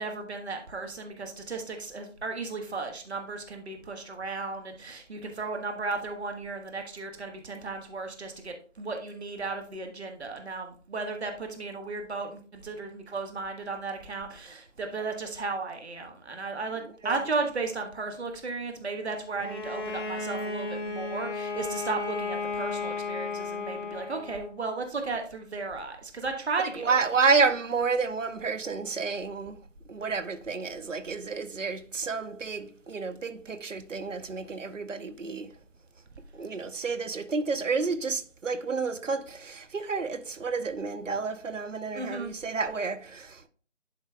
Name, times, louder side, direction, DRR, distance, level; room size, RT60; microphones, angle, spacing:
voice 1, 0.0-27.3 41.9-42.3, right 3 dB, 60° right, 1.4 m, -35 dB
Bowed string instrument, 19.4-24.5, left 3 dB, 55° left, 2.9 m, -34 dB
voice 2, 26.7-29.6 29.9-35.5 36.3-43.5, right 4 dB, 80° right, 0.9 m, -30 dB
11.5 x 4.3 x 2.3 m
figure-of-eight pair, 160°, 37 cm